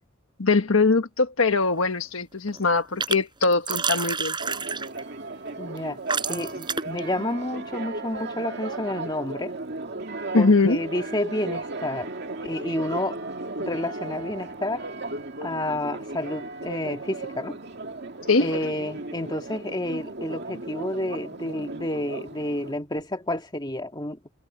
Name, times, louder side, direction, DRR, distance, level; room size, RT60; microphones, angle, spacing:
voice 1, 0.4-4.3 10.3-10.8 18.3-18.5, left 3 dB, 75° left, 1.4 m, -21 dB
sound 1, 1.5-2.0 2.3-3.2 3.4-5.0 5.8-5.9 6.1-7.0, right 5 dB, 20° right, 5.6 m, -29 dB
Church bell, 4.4-22.7, right 2 dB, 50° right, 2.3 m, -36 dB
voice 2, 5.6-6.0 6.3-9.5 10.3-12.1 12.4-13.2 13.6-14.8 15.4-17.6 18.4-24.2, left 1 dB, 20° left, 2.2 m, -30 dB
head